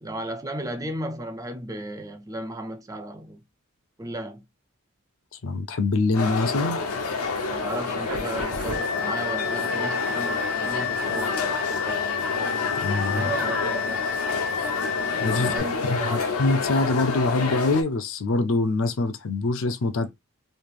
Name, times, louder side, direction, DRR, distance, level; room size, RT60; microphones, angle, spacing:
voice 1, 0.0-3.4 4.0-4.4 7.5-12.1 13.1-14.0 15.3-16.3, right 1 dB, 15° right, 0.4 m, -35 dB
voice 2, 5.4-6.8 12.8-13.3 15.2-15.5 15.8-20.1, left 3 dB, 60° left, 0.5 m, -24 dB
sound 1, 6.1-17.8, left 4 dB, 85° left, 0.8 m, -28 dB
sound 2, 8.0-15.6, left 6 dB, 75° right, 1.0 m, -31 dB
3.2 x 2.4 x 3.4 m
head